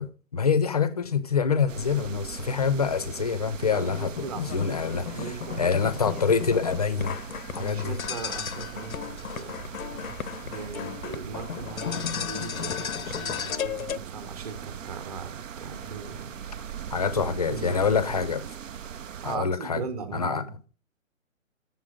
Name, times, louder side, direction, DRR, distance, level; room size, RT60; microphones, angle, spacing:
voice 1, 0.0-5.1 5.6-7.2 7.6-8.0 16.9-18.4 19.2-19.8 20.1-20.4, left 6 dB, 30° left, 0.5 m, -26 dB
sound 1, 1.7-19.4, right 8 dB, 70° right, 0.7 m, -40 dB
sound 2, 3.7-14.0, left 8 dB, 85° left, 0.7 m, -35 dB
voice 2, 3.7-5.6 6.9-7.1 7.5-9.6 10.4-16.7 17.5-18.0 19.2-20.5, right 5 dB, 30° right, 1.0 m, -39 dB
7.6 x 7.0 x 5.0 m
hypercardioid pair, 155°, 41 cm